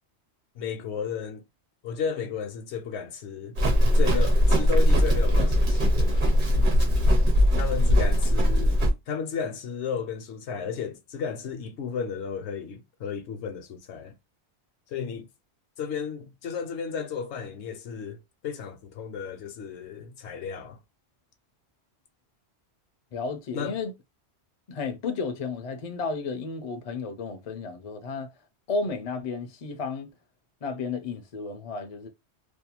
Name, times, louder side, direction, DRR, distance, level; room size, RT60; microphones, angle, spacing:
voice 1, 0.5-1.4 1.8-3.6 3.9-6.3 7.5-14.1 14.9-15.3 15.8-20.8 23.5-23.8, left 6 dB, 80° left, 0.9 m, -33 dB
Livestock farm animals working animals, 3.6-8.9, equal, 50° right, 0.9 m, -20 dB
voice 2, 23.1-23.9 24.7-28.3 28.7-30.1 30.6-32.1, left 4 dB, 45° left, 0.5 m, -32 dB
2.5 x 2.2 x 2.8 m
omnidirectional pair, 1.2 m